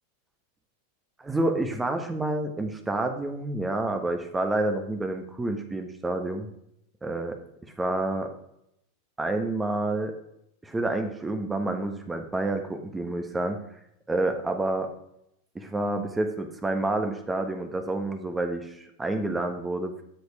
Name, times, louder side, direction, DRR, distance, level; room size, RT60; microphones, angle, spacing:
voice 1, 1.2-6.5 7.0-7.4 7.8-8.3 9.2-10.1 10.6-13.6 14.1-14.9 15.5-20.0, right 2 dB, 10° right, 6 dB, 1.2 m, -28 dB
8.0 x 6.5 x 4.8 m, 0.77 s
hypercardioid pair, 95°, 0 cm